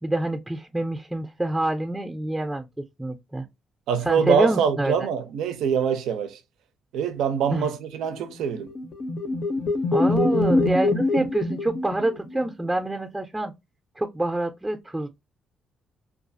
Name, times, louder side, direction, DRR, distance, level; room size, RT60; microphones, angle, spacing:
voice 1, 0.0-2.7 3.0-3.5 4.1-4.9 7.5-7.7 9.9-13.5 14.0-15.1, right 1 dB, 10° right, 0.4 m, -26 dB
voice 2, 3.9-6.4 6.9-8.7 10.1-10.4, right 7 dB, 85° right, 0.4 m, -24 dB
sound 1, 8.5-12.5, left 2 dB, 50° left, 0.5 m, -24 dB
2.3 x 2.3 x 2.5 m
cardioid pair, 100°, 0 cm